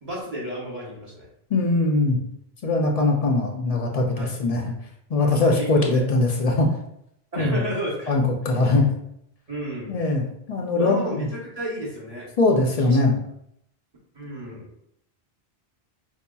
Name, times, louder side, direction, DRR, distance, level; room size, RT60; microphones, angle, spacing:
voice 1, 0.0-1.3 4.2-4.3 5.1-6.0 7.3-8.1 9.5-10.0 10.8-12.3 12.8-13.0 14.1-14.9, right 1 dB, 40° right, -5 dB, 0.9 m, -32 dB
voice 2, 1.5-2.2 2.6-4.6 5.1-6.8 7.4-7.6 8.1-8.9 9.9-11.3 12.4-13.2, left 2 dB, 55° left, 1 dB, 0.4 m, -21 dB
4.7 x 2.7 x 2.2 m, 0.75 s
omnidirectional pair, 1.1 m